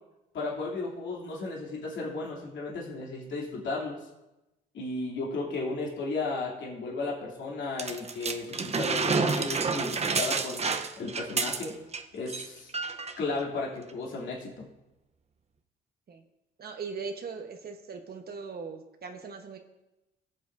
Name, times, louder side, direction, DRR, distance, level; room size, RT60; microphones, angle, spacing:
voice 1, 0.3-4.0 4.7-10.6 11.0-11.7 12.1-12.7 13.2-14.7, left 3 dB, 65° left, -4 dB, 3.0 m, -34 dB
sound 1, 7.8-12.0 12.3-12.5 12.7-13.2 13.9-14.0, right 4 dB, 30° right, 0.8 m, -29 dB
voice 2, 16.6-19.6, right 5 dB, 50° right, 4 dB, 1.2 m, -39 dB
19.0 x 7.7 x 2.7 m, 0.98 s
cardioid pair, 90°, 20 cm